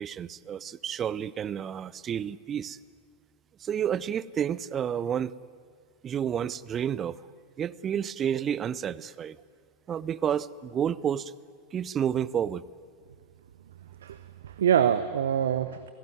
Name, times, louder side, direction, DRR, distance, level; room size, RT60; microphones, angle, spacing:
voice 1, 0.0-2.8 3.6-5.3 6.0-7.2 7.6-9.4 9.9-11.3 11.7-12.6, right 9 dB, 25° right, 20 dB, 0.6 m, -30 dB
voice 2, 14.0-15.9, right 9 dB, 60° right, 13 dB, 0.8 m, -25 dB
30.0 x 17.5 x 9.4 m, 2.1 s
figure-of-eight pair, 90°, 0 cm